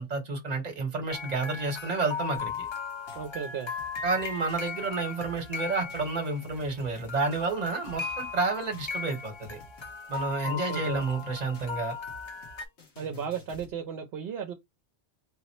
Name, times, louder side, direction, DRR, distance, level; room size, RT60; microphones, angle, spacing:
voice 1, 0.0-2.7 4.0-9.6 10.1-12.0, right 3 dB, 40° right, 1.0 m, -30 dB
sound 1, 1.1-6.8 7.1-12.7, left 5 dB, 45° left, 0.3 m, -38 dB
sound 2, 2.4-13.8, equal, 70° left, 1.4 m, -52 dB
voice 2, 3.2-3.7 10.5-11.1 13.0-14.5, right 7 dB, 70° right, 0.8 m, -35 dB
3.7 x 2.0 x 4.2 m
omnidirectional pair, 1.1 m